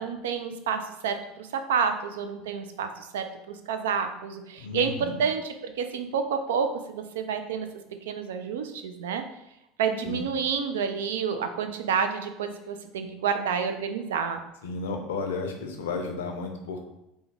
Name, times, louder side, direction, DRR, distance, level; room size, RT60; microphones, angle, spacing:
voice 1, 0.0-7.7 8.1-9.2 9.8-14.4, right 6 dB, 80° right, 7 dB, 0.3 m, -29 dB
voice 2, 4.6-5.2 10.0-10.3 14.6-16.8, left 4 dB, 80° left, 4 dB, 0.5 m, -33 dB
3.4 x 2.1 x 3.2 m, 0.86 s
hypercardioid pair, 85°, 0 cm